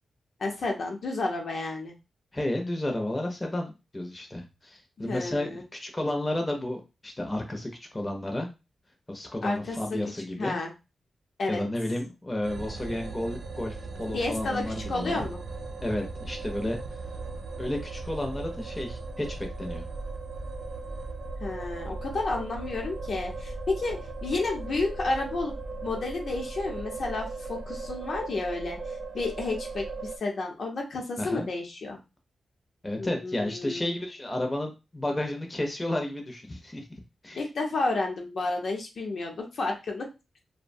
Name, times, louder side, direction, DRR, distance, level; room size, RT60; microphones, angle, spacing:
voice 1, 0.4-1.9 5.0-5.6 9.4-10.0 10.4-10.7 11.4-11.6 14.1-14.6 14.9-15.4 21.4-25.5 25.8-28.8 29.1-32.0 33.0-33.9 37.3-40.1, left 3 dB, 65° left, 1 dB, 0.7 m, -31 dB
voice 2, 2.3-8.5 9.1-10.6 11.5-15.3 15.8-17.0 17.6-19.9 31.2-31.5 32.8-36.9 37.2-37.4, left 1 dB, 20° left, 2 dB, 0.6 m, -32 dB
sound 1, 12.4-30.2, right 3 dB, 60° right, 0.4 m, -37 dB
2.7 x 2.1 x 2.6 m, 0.27 s
wide cardioid pair, 105°, 0 cm